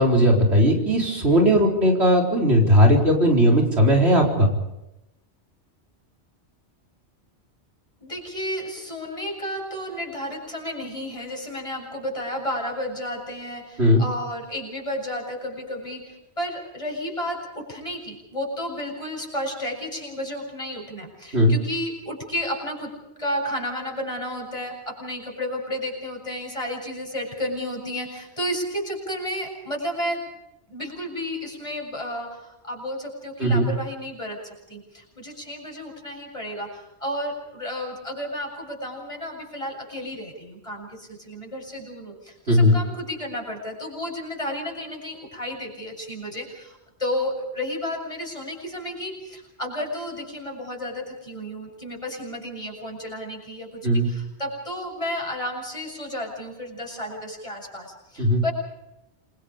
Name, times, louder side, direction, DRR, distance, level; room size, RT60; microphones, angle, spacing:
voice 1, 0.0-4.5 13.8-14.0 21.3-21.5 33.4-33.7 42.5-42.8 53.8-54.1 58.2-58.4, equal, 70° right, 0 dB, 4.5 m, -18 dB
voice 2, 8.0-22.9 23.2-30.3 30.7-58.5, equal, 30° left, -1 dB, 7.7 m, -32 dB
28.0 x 23.5 x 5.1 m, 0.90 s
omnidirectional pair, 1.1 m